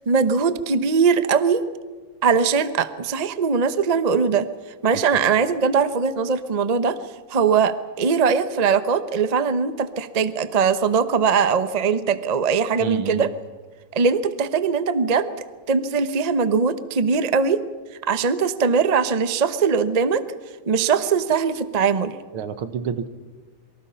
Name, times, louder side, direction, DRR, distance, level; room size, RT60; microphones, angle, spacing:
voice 1, 0.1-1.6 2.2-4.5 4.8-7.0 7.3-13.3 13.9-15.3 15.7-17.6 18.0-20.2 20.7-22.2, right 5 dB, 50° right, 12 dB, 0.4 m, -21 dB
voice 2, 12.8-13.3 22.3-23.1, right 8 dB, 80° right, 11 dB, 2.1 m, -28 dB
27.5 x 23.5 x 5.7 m, 1.4 s
omnidirectional pair, 2.3 m